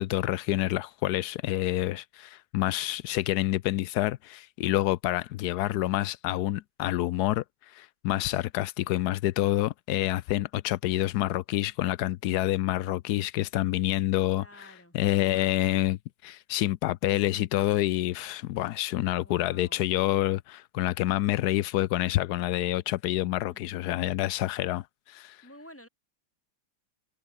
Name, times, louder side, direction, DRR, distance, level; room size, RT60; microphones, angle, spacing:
voice 1, 0.0-16.0 16.2-25.4, left 15 dB, 85° left, 0.8 m, -28 dB
voice 2, 14.3-15.0 15.3-15.6 19.2-19.8 23.5-23.8 25.4-25.9, equal, 5° left, 4.5 m, -51 dB
omnidirectional pair, 2.3 m